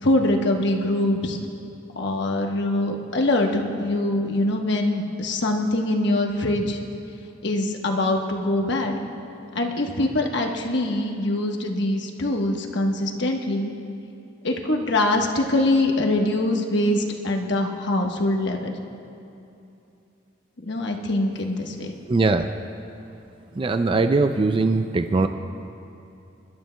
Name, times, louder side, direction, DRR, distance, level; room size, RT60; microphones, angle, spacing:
voice 1, 0.0-1.4 2.0-6.8 7.4-8.9 9.5-13.7 14.4-18.7 20.6-21.9, left 1 dB, 60° left, 2 dB, 1.2 m, -23 dB
voice 2, 22.1-22.5 23.6-25.3, right 3 dB, 25° right, 8 dB, 0.3 m, -20 dB
28.5 x 12.0 x 2.2 m, 2.8 s
head